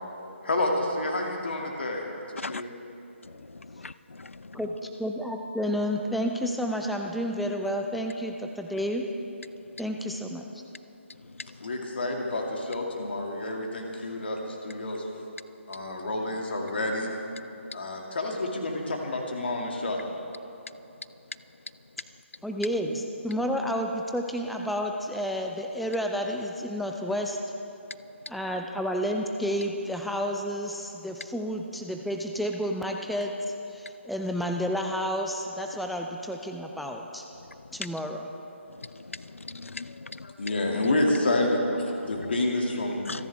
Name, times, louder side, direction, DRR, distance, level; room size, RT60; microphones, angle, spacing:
voice 1, 0.2-2.0 2.3-2.7 11.6-15.0 15.7-17.1 17.7-20.0 40.2-43.3, left 2 dB, 55° left, 1 dB, 2.3 m, -29 dB
voice 2, 3.3-4.6 37.8-37.9 38.8-40.3 42.1-42.3 43.1-43.3, left 3 dB, 75° left, 16 dB, 0.4 m, -39 dB
voice 3, 4.5-9.1 9.8-10.5 22.4-27.4 28.3-33.3 33.7-37.2 37.7-38.3, equal, ahead, 3 dB, 0.4 m, -30 dB
28.0 x 10.5 x 3.5 m, 3.0 s
figure-of-eight pair, 145°, 7 cm